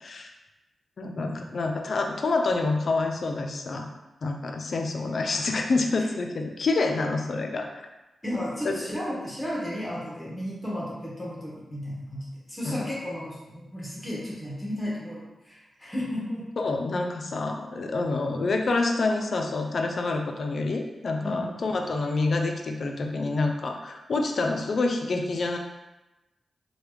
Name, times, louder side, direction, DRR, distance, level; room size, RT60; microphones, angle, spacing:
voice 1, 0.0-0.3 1.0-3.9 4.2-7.8 8.6-8.8 12.7-12.8 16.6-25.6, left 3 dB, 60° left, 4 dB, 0.4 m, -27 dB
voice 2, 1.2-1.5 8.2-16.5 21.2-21.5, equal, 20° left, -6 dB, 0.9 m, -34 dB
3.2 x 2.2 x 3.1 m, 1.0 s
cardioid pair, 80°, 0 cm